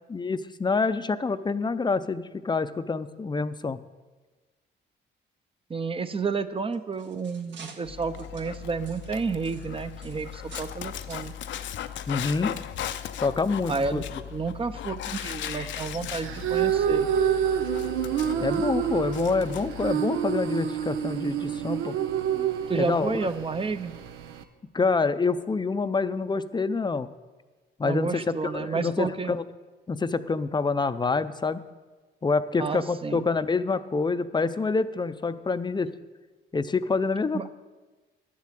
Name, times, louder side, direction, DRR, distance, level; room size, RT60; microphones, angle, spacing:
voice 1, 0.1-3.8 12.1-12.5 13.2-14.0 18.4-21.9 22.7-23.2 24.7-27.1 27.8-29.4 29.9-31.6 32.2-35.9 36.5-37.5, left 4 dB, 20° left, 12 dB, 0.6 m, -27 dB
voice 2, 5.7-11.3 13.7-14.0 14.3-17.1 22.3-23.9 27.8-29.3 32.6-33.3 37.3-37.5, right 4 dB, 30° right, 11 dB, 0.7 m, -31 dB
sound 1, 6.6-10.8 11.1-11.3 12.0-12.1 12.6-12.7, right 5 dB, 65° right, 1.5 m, -49 dB
Dog, 7.8-19.9, left 10 dB, 70° left, 0.6 m, -37 dB
sound 2, 16.2-24.4, right 9 dB, 90° right, 0.8 m, -28 dB
10.5 x 7.5 x 7.5 m, 1.3 s
cardioid pair, 90°, 20 cm